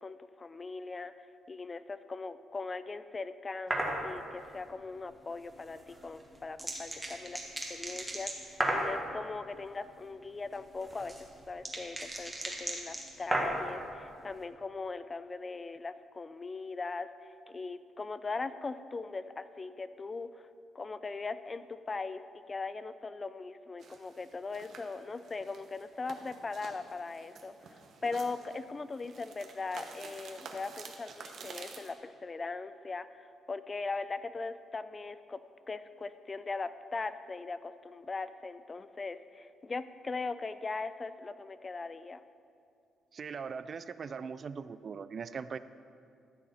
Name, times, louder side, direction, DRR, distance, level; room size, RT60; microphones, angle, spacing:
voice 1, 0.0-7.4 7.7-20.5 20.7-35.4 35.7-42.2, left 3 dB, 30° left, 13 dB, 0.4 m, -40 dB
sound 1, 3.7-4.0 5.9-9.0 10.5-13.7, right 1 dB, 10° right, 1.5 m, -34 dB
sound 2, 23.8-31.9, right 5 dB, 65° right, 1.0 m, -50 dB
voice 2, 43.1-45.6, right 6 dB, 45° right, 14 dB, 0.3 m, -40 dB
14.0 x 6.4 x 4.2 m, 2.4 s
cardioid pair, 90°, 0 cm